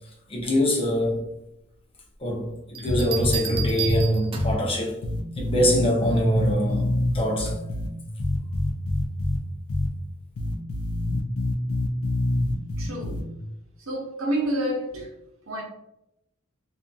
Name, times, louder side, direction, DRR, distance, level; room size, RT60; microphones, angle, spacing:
voice 1, 0.3-1.2 2.2-5.0 5.4-7.8, equal, 25° left, 0.6 m, -24 dB
sound 1, 2.8-4.7 6.3-6.7, right 9 dB, 25° right, 0.3 m, -33 dB
sound 2, 2.9-4.0 4.4-4.5 5.0-7.9 8.2-9.4 9.7-9.9 10.4-13.2, left 1 dB, 80° left, 0.4 m, -26 dB
voice 2, 12.8-13.3 13.8-15.1 15.5-15.6, right 1 dB, 75° right, 0.7 m, -28 dB
2.6 x 2.4 x 2.3 m
head